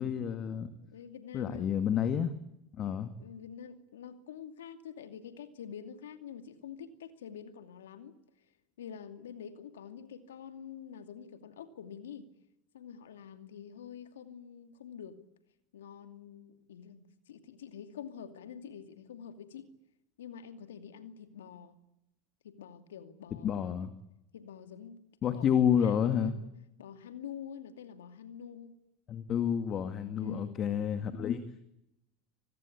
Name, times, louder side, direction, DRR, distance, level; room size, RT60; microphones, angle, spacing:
voice 1, 0.0-0.7 1.3-2.3 2.8-3.1 23.4-23.9 25.2-26.4 29.1-31.5, left 8 dB, 40° left, 10 dB, 2.1 m, -29 dB
voice 2, 0.8-1.7 3.2-8.2 8.8-12.3 12.7-15.2 15.7-19.7 20.2-21.8 22.4-23.8 24.3-26.5 26.8-28.7 30.2-30.6, left 8 dB, 90° left, 9 dB, 2.6 m, -47 dB
25.5 x 20.0 x 8.7 m, 0.84 s
hypercardioid pair, 95°, 0 cm